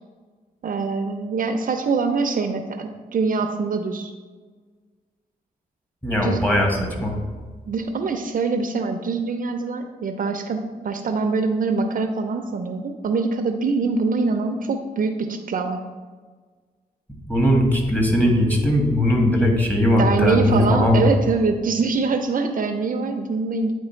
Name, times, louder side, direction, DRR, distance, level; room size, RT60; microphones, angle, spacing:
voice 1, 0.6-4.1 6.2-6.4 7.7-15.8 20.0-23.7, right 4 dB, 60° right, 6 dB, 0.5 m, -24 dB
voice 2, 6.0-7.2 17.3-21.1, left 1 dB, 10° left, -1 dB, 1.6 m, -19 dB
9.0 x 3.2 x 4.4 m, 1.4 s
cardioid pair, 90°, 16 cm